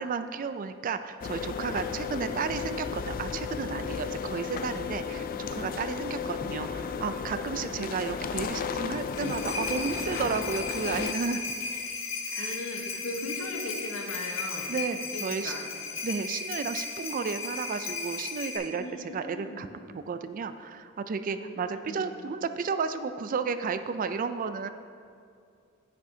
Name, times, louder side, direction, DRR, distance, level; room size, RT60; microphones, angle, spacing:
voice 1, 0.0-11.4 12.3-12.6 12.9-13.0 14.7-15.5 16.0-24.7, right 5 dB, 40° right, 11 dB, 0.3 m, -33 dB
sound 1, 1.2-11.1, left 6 dB, 40° left, 0.3 m, -34 dB
voice 2, 6.0-6.6 12.4-14.8 15.1-15.8 18.7-19.6 21.4-22.0, left 2 dB, 85° left, 2 dB, 1.1 m, -39 dB
sound 2, 8.9-18.6, left 4 dB, 65° left, 1.3 m, -35 dB
10.5 x 8.8 x 2.7 m, 2.3 s
head